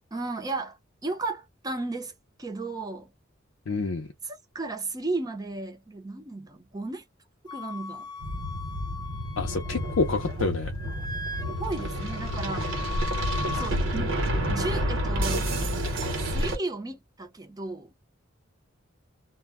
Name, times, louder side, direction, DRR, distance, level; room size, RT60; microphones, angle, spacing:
voice 1, 0.1-2.1 2.4-3.1 4.2-7.0 7.5-8.1 11.6-12.9 13.5-14.2 14.5-15.5 16.2-17.9, right 3 dB, 20° right, 0.6 m, -34 dB
voice 2, 3.7-4.1 9.4-10.7, left 3 dB, 75° left, 0.5 m, -28 dB
Wind instrument woodwind instrument, 7.5-10.4 10.6-13.7, left 4 dB, 20° left, 0.4 m, -39 dB
sound 1, 8.2-16.6, equal, 70° right, 1.0 m, -29 dB
2.1 x 2.1 x 3.3 m
head